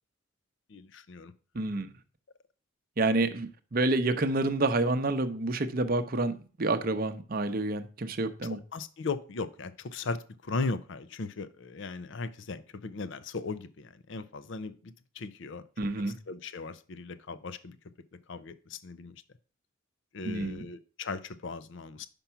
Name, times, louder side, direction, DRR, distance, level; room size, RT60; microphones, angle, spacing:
voice 1, 0.7-1.3 8.4-15.6 16.3-17.8 18.3-19.1 20.1-22.1, left 4 dB, 60° left, 0.5 m, -37 dB
voice 2, 1.5-1.9 3.0-8.6 15.8-16.2 20.2-20.6, right 2 dB, 45° right, 0.7 m, -28 dB
5.8 x 5.3 x 5.6 m
head